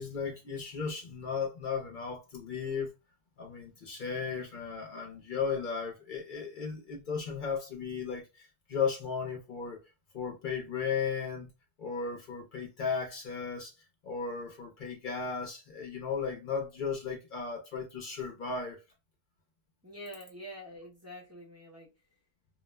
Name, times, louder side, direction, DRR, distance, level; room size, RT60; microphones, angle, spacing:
voice 1, 0.0-2.9 3.4-9.8 10.1-11.5 11.8-13.7 14.0-18.8, left 5 dB, 55° left, 0.6 m, -35 dB
voice 2, 19.8-21.9, equal, 20° right, 0.5 m, -46 dB
2.3 x 2.0 x 3.2 m
omnidirectional pair, 1.3 m